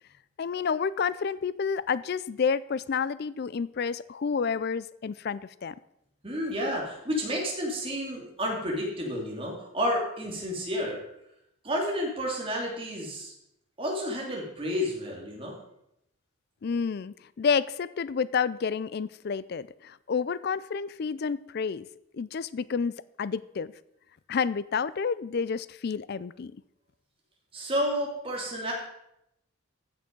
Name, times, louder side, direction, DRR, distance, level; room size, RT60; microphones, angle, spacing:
voice 1, 0.4-5.8 16.6-21.9 22.1-23.7 24.3-26.5, left 6 dB, 50° left, 18 dB, 0.4 m, -30 dB
voice 2, 6.2-11.0 11.6-13.3 13.8-15.5 27.5-28.7, equal, 25° right, -2 dB, 2.8 m, -30 dB
15.0 x 6.3 x 5.2 m, 0.81 s
head